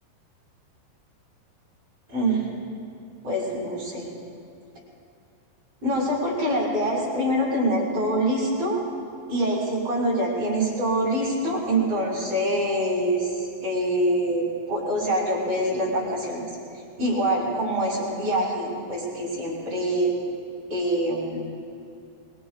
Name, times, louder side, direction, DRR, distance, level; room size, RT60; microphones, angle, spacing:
voice 1, 2.1-2.5 3.2-4.1 5.8-8.8 9.3-16.4 17.0-20.1 20.7-21.4, right 1 dB, 35° right, -6 dB, 5.1 m, -25 dB
24.5 x 23.0 x 2.4 m, 2.5 s
omnidirectional pair, 5.2 m